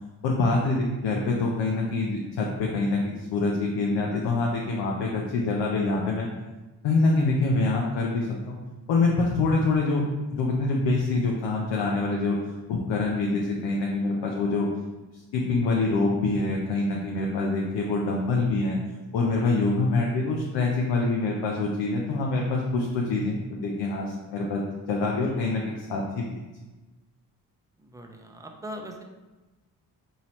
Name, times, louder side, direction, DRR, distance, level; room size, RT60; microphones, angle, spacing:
voice 1, 0.2-6.3 6.8-8.6 8.9-10.0 10.3-12.4 12.7-14.7 15.1-18.8 19.1-24.6 24.9-26.4, left 3 dB, 80° left, -1 dB, 0.6 m, -25 dB
voice 2, 27.8-29.0, equal, 10° right, 2 dB, 0.6 m, -41 dB
4.1 x 2.8 x 3.0 m, 1.1 s
supercardioid pair, 45°, 41 cm